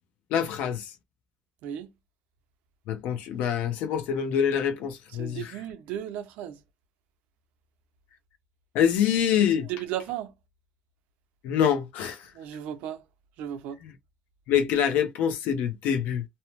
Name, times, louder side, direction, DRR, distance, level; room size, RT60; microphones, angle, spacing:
voice 1, 0.3-0.9 2.9-5.5 8.7-9.7 11.4-12.2 13.8-13.9 14.5-16.2, left 8 dB, 85° left, 0.6 m, -25 dB
voice 2, 1.6-1.9 5.2-6.6 9.7-10.3 12.3-13.0 13.4-13.8, right 10 dB, 90° right, 0.6 m, -35 dB
2.7 x 2.0 x 3.0 m
cardioid pair, 150°, 3 cm